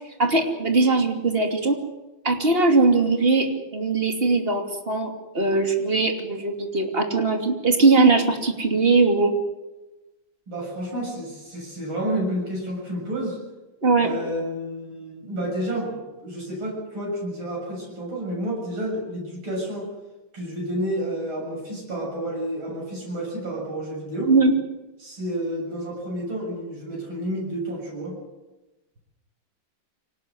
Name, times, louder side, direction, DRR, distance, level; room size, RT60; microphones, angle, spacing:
voice 1, 0.2-1.8 2.2-3.5 3.7-5.1 5.3-9.3 13.8-14.2 24.3-24.5, right 3 dB, 30° right, 3 dB, 2.9 m, -20 dB
voice 2, 10.5-13.4 14.0-19.9 20.3-24.3 25.0-28.1, right 1 dB, 85° right, -3 dB, 7.9 m, -30 dB
24.5 x 18.5 x 7.9 m, 1.1 s
omnidirectional pair, 2.2 m